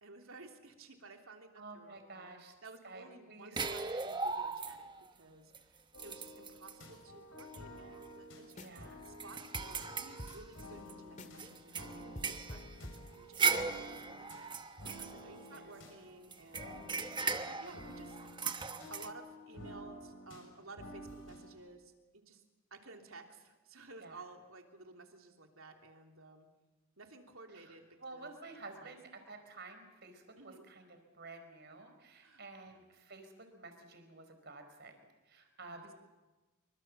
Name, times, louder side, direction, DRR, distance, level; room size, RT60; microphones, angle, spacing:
voice 1, 0.0-2.3 2.6-18.6 18.9-22.4 22.7-26.5 27.0-27.9 28.1-28.3 28.6-29.0 30.4-30.6 32.2-33.1 35.6-35.8, right 3 dB, 70° right, 3 dB, 3.2 m, -55 dB
voice 2, 1.6-2.5 2.8-4.1 8.5-9.0 13.4-13.8 15.5-15.7 24.0-24.2 27.5-35.9, right 3 dB, 50° right, 6 dB, 4.6 m, -51 dB
sound 1, 3.6-5.1 5.5-5.6 5.9-6.8 7.4-7.6 8.0-8.1 8.5-10.9 11.4-15.8 16.3-19.1, right 5 dB, 20° right, 1.1 m, -38 dB
sound 2, 5.9-21.5, equal, 60° left, 6.5 m, -52 dB
sound 3, 8.5-8.9 9.2-9.3 9.5-11.5 11.8-11.9 12.1-13.6, left 1 dB, 35° left, 2.2 m, -49 dB
27.0 x 24.5 x 7.4 m, 1.2 s
head